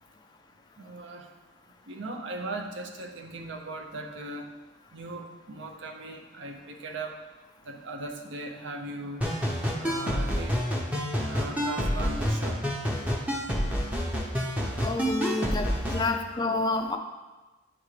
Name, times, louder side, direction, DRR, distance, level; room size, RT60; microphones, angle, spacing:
voice 1, 0.8-1.2 1.9-4.5 4.9-5.2 5.5-7.2 7.7-9.2 9.8-10.6 11.3-12.6, right 2 dB, 70° right, 4 dB, 0.7 m, -38 dB
sound 1, 9.2-16.1, equal, 5° right, 0.7 m, -28 dB
voice 2, 14.8-15.7 15.9-17.0, left 3 dB, 20° left, 3 dB, 0.3 m, -28 dB
9.7 x 3.6 x 3.2 m, 1.2 s
head